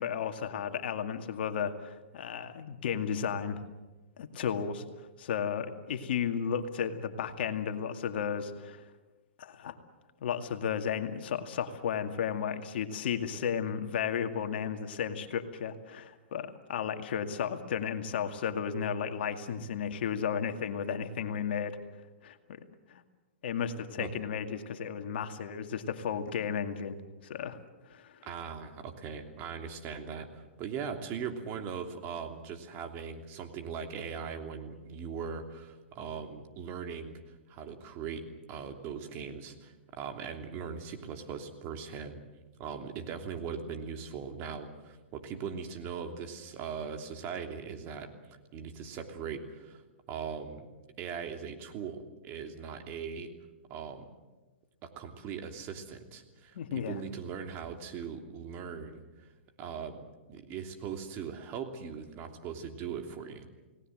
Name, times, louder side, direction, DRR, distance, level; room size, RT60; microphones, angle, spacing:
voice 1, 0.0-3.6 4.2-8.8 9.4-9.8 10.2-21.8 22.2-22.6 22.9-23.0 23.4-27.0 27.2-27.6 27.9-28.1 56.5-57.0, left 7 dB, 65° left, 7 dB, 2.2 m, -34 dB
voice 2, 28.2-37.2 37.5-42.2 42.6-48.1 48.5-49.8 50.1-50.7 51.0-53.3 53.7-54.1 54.8-59.0 59.6-63.5, right 6 dB, 35° right, 5 dB, 3.0 m, -40 dB
29.5 x 18.5 x 7.8 m, 1.1 s
hypercardioid pair, 125°, 6 cm